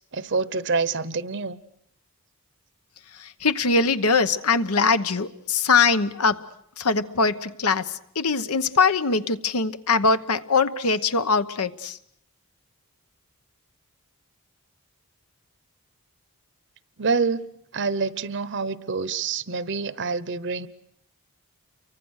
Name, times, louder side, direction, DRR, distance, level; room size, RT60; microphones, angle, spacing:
voice 1, 0.1-1.6 17.0-17.4 17.7-20.7, right 4 dB, 55° right, 16 dB, 0.9 m, -26 dB
voice 2, 3.1-6.4 6.8-12.0, left 4 dB, 85° left, 11 dB, 1.1 m, -22 dB
29.0 x 24.0 x 6.5 m, 0.72 s
head